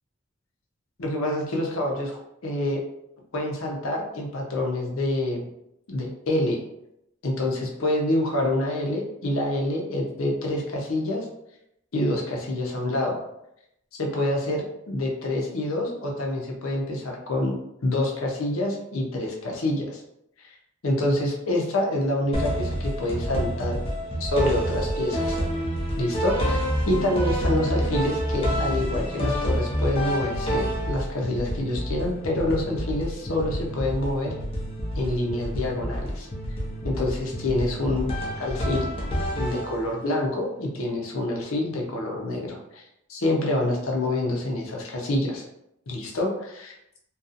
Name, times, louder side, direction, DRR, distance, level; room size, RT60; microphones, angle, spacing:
voice 1, 1.0-2.8 3.3-5.5 5.9-6.6 7.2-11.3 11.9-13.2 13.9-17.5 17.8-20.0 20.4-20.5 20.8-23.8 24.2-25.4 26.0-34.3 34.9-36.3 36.8-38.1 38.4-38.9 39.3-45.4 45.9-46.7, left 1 dB, 75° left, -1 dB, 0.6 m, -27 dB
sound 1, 22.3-40.1, equal, 25° left, 0.5 m, -28 dB
2.6 x 2.3 x 2.4 m, 0.81 s
head